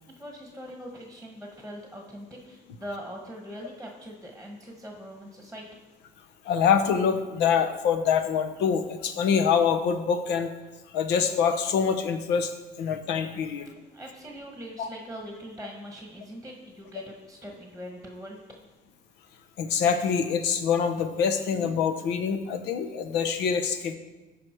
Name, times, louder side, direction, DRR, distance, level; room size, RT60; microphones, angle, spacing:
voice 1, 0.2-5.7 13.5-18.4, equal, ahead, 0 dB, 1.5 m, -42 dB
voice 2, 6.4-10.5 10.9-12.5 12.8-13.7 14.8-14.9 19.6-23.9, left 7 dB, 90° left, 8 dB, 0.9 m, -25 dB
14.5 x 5.2 x 4.5 m, 1.2 s
cardioid pair, 110°, 17 cm